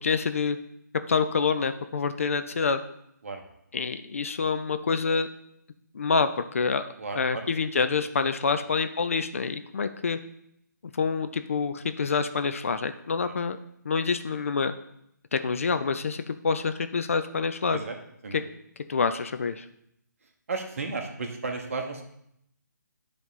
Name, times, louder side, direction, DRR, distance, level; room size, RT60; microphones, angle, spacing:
voice 1, 0.0-0.6 1.1-2.8 3.7-5.3 5.9-6.8 7.2-10.2 10.9-13.6 13.8-14.7 15.3-17.8 18.9-19.6, left 5 dB, 45° left, 9 dB, 0.4 m, -27 dB
voice 2, 7.0-7.5 13.2-13.3 17.7-18.0 18.2-18.4 20.5-22.0, right 4 dB, 45° right, 4 dB, 1.1 m, -33 dB
10.0 x 3.4 x 4.1 m, 0.74 s
figure-of-eight pair, 140°, 10 cm